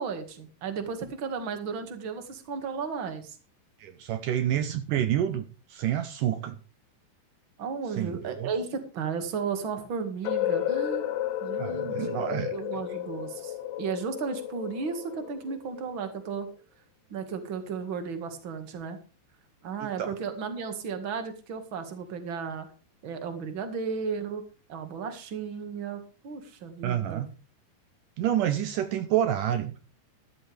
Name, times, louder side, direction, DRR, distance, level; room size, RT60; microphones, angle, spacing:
voice 1, 0.0-3.4 7.6-11.0 11.4-16.5 17.1-19.0 19.6-22.7 23.0-24.4 24.7-27.2, right 5 dB, 45° right, 7 dB, 1.7 m, -34 dB
voice 2, 3.8-6.6 7.9-8.5 11.6-12.5 20.0-20.1 26.8-27.3 28.2-29.8, right 11 dB, 90° right, 9 dB, 1.8 m, -28 dB
sound 1, 10.2-16.1, left 11 dB, 75° left, 3.1 m, -32 dB
13.5 x 13.5 x 3.5 m, 0.34 s
omnidirectional pair, 5.1 m